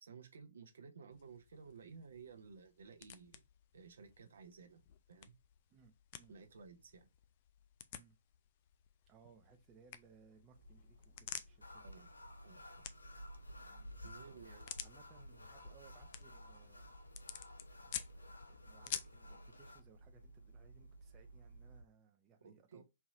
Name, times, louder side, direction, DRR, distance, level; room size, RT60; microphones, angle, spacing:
voice 1, 0.0-3.4 3.7-4.8 5.1-5.3 6.3-7.1 11.8-12.1 12.4-12.9 14.0-14.7 22.4-22.8, right 5 dB, 65° right, 0.8 m, -55 dB
sound 1, 1.1-19.3, left 11 dB, 40° left, 0.4 m, -52 dB
voice 2, 5.7-6.3 7.9-8.2 9.1-12.1 13.6-14.4 14.8-16.9 17.8-22.8, right 7 dB, 25° right, 0.7 m, -65 dB
sound 2, 10.5-21.8, right 1 dB, 60° left, 1.4 m, -61 dB
sound 3, 11.6-19.8, left 1 dB, 85° left, 0.6 m, -54 dB
4.4 x 2.9 x 2.5 m
figure-of-eight pair, 125°, 0 cm